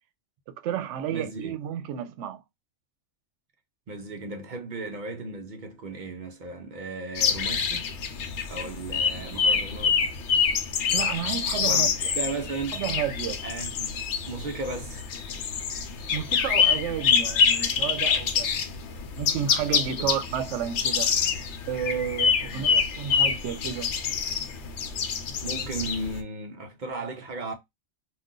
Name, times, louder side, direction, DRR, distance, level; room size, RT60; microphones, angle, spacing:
voice 1, 0.5-2.4 10.9-12.1 12.7-13.4 16.1-18.5 19.2-21.1 21.7-23.9, right 9 dB, 85° right, 0.9 m, -31 dB
voice 2, 1.1-1.6 3.9-7.9 8.5-10.0 11.7-12.8 13.4-14.0 14.3-15.0 18.6-18.8 20.0-20.1 22.5-22.7 25.4-27.5, right 2 dB, 55° right, 0.6 m, -35 dB
sound 1, 7.2-26.2, left 6 dB, 80° left, 0.9 m, -26 dB
2.4 x 2.4 x 3.6 m
omnidirectional pair, 1.2 m